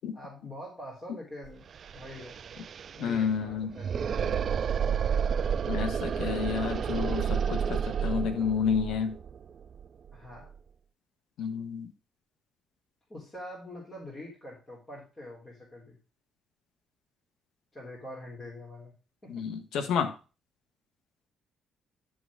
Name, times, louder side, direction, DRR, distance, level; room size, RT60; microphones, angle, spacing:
voice 1, 0.1-1.6 1.9-2.4 3.0-4.3 10.1-10.5 13.1-16.0 17.7-18.9 19.2-19.4, left 1 dB, 25° left, -4 dB, 3.3 m, -44 dB
sound 1, 1.4-1.5 1.7-10.6, right 7 dB, 55° right, 0.3 m, -31 dB
voice 2, 3.0-3.7 5.6-9.2 11.4-11.9 19.3-20.1, left 7 dB, 80° left, 9 dB, 1.3 m, -30 dB
11.0 x 4.0 x 4.8 m, 0.33 s
cardioid pair, 90°, 0 cm